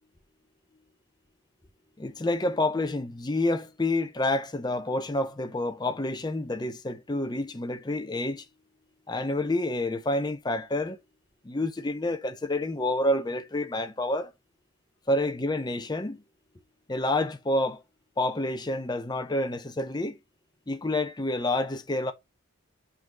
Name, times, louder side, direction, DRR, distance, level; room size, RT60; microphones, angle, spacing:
voice 1, 2.0-8.4 9.1-11.0 11.4-14.3 15.1-16.2 16.9-17.8 18.2-20.2 20.7-22.1, left 1 dB, 20° left, 0.6 m, -28 dB
5.6 x 3.7 x 5.1 m
head